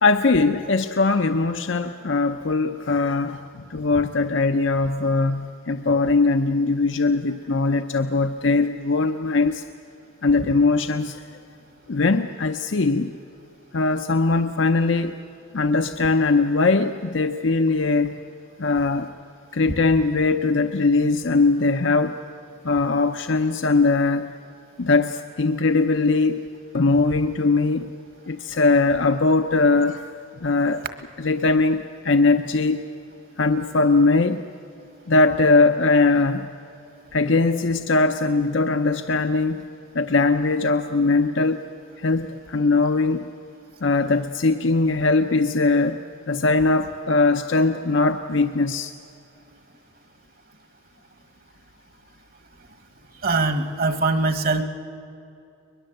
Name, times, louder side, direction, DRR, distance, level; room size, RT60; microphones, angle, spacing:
voice 1, 0.0-9.6 10.2-11.2 11.9-13.1 13.7-15.2 15.5-18.2 18.6-19.1 19.5-22.2 22.6-24.2 24.8-26.5 26.7-27.9 28.3-30.1 30.4-30.8 31.2-32.9 33.4-34.4 35.1-36.5 37.1-39.7 39.9-41.6 42.0-43.3 43.8-46.0 46.3-48.9, left 3 dB, 75° left, 7 dB, 0.7 m, -20 dB
voice 2, 53.2-54.6, right 3 dB, 50° right, 9 dB, 1.5 m, -22 dB
22.0 x 21.5 x 7.9 m, 2.6 s
head